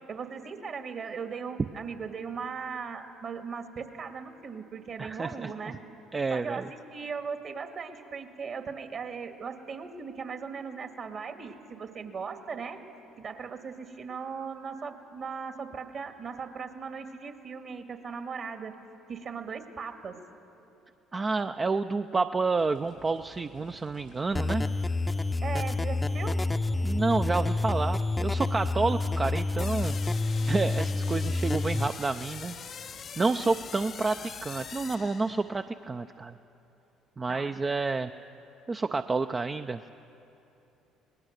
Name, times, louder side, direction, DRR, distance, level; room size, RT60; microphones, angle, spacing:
voice 1, 0.1-5.7 6.3-12.8 13.2-18.7 19.1-20.2 25.4-26.4 37.3-37.5, right 5 dB, 50° right, 6 dB, 2.2 m, -38 dB
voice 2, 5.0-5.5 6.1-6.7 21.1-24.7 26.8-30.0 30.5-32.5 33.2-36.4 37.2-38.1 38.7-39.8, right 3 dB, 30° right, 8 dB, 0.5 m, -29 dB
sound 1, 22.5-35.0, right 2 dB, 90° right, 6.9 m, -55 dB
sound 2, 24.3-31.9, left 2 dB, 15° left, 0.7 m, -28 dB
sound 3, 29.6-35.7, left 7 dB, 50° left, 0.6 m, -43 dB
25.5 x 20.0 x 6.7 m, 2.9 s
hypercardioid pair, 60°, 0 cm